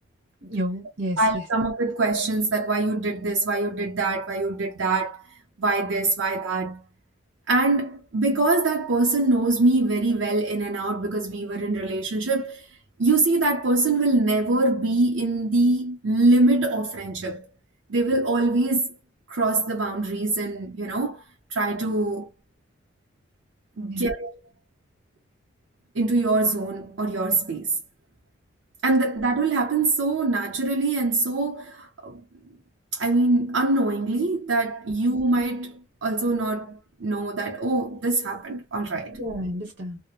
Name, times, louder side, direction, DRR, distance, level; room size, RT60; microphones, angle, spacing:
voice 1, 0.4-1.4 23.7-24.1 39.1-40.0, equal, 55° right, 1.0 m, -31 dB
voice 2, 1.2-6.8 7.5-12.7 13.0-17.5 17.9-19.0 19.3-21.2 21.5-22.3 23.8-24.4 25.9-27.8 28.8-32.2 32.9-39.2, right 2 dB, 85° right, 0.6 m, -24 dB
2.9 x 2.0 x 2.3 m
head